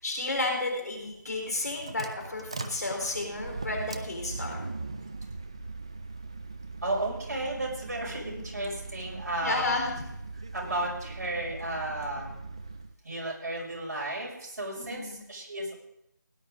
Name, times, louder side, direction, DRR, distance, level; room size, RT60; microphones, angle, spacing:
voice 1, 0.0-4.6 9.4-10.0 14.8-15.2, left 2 dB, 55° left, 1 dB, 4.0 m, -32 dB
sound 1, 1.4-12.9, right 3 dB, 15° right, 0.3 m, -40 dB
voice 2, 6.8-9.8 10.3-12.5 13.0-15.7, right 1 dB, 55° right, -4 dB, 6.2 m, -34 dB
17.0 x 11.0 x 3.8 m, 0.79 s
figure-of-eight pair, 165°, 11 cm